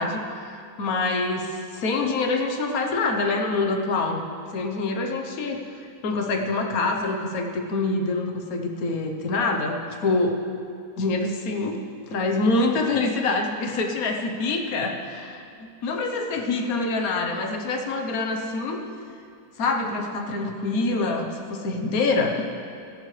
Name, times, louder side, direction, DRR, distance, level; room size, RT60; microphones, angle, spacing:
voice 1, 0.0-4.2 4.5-5.6 6.0-10.4 11.0-11.8 12.1-18.8 19.6-22.4, left 3 dB, 65° left, 2 dB, 1.5 m, -25 dB
16.5 x 14.0 x 3.3 m, 2.5 s
omnidirectional pair, 1.6 m